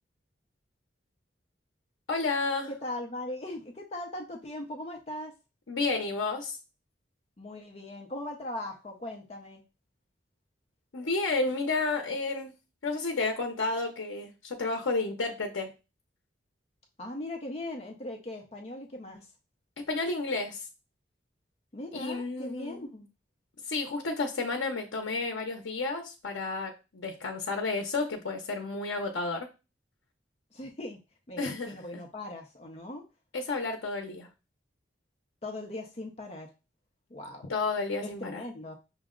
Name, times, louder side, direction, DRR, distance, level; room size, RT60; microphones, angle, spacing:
voice 1, 2.1-2.7 5.7-6.6 10.9-12.5 12.8-15.7 19.9-20.6 21.9-22.9 23.7-29.5 31.4-31.7 33.3-34.3 37.5-38.4, left 3 dB, 90° left, 3 dB, 0.7 m, -31 dB
voice 2, 2.7-5.3 7.4-9.6 17.0-19.3 21.7-23.1 30.5-31.0 31.3-33.0 35.4-36.5 37.1-37.5 38.0-38.8, left 1 dB, 35° left, 2 dB, 0.6 m, -39 dB
5.9 x 2.1 x 3.6 m, 0.29 s
head